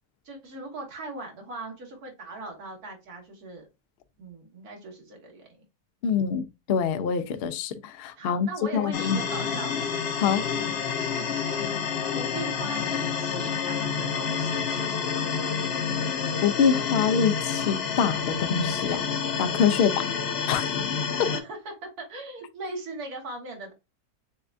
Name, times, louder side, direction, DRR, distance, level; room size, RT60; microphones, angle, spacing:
voice 1, 0.2-3.6 4.2-5.5 8.2-9.9 11.1-11.8 12.1-15.2 19.7-19.9 21.3-23.7, right 2 dB, 80° right, 1.9 m, -39 dB
voice 2, 6.0-8.5 8.7-9.2 10.2-10.4 16.4-19.0 19.4-19.9 20.5-20.7 21.2-21.3, left 7 dB, 75° left, 0.5 m, -25 dB
sound 1, 8.9-21.4, left 6 dB, 55° left, 0.8 m, -29 dB
6.6 x 2.3 x 2.5 m
omnidirectional pair, 1.6 m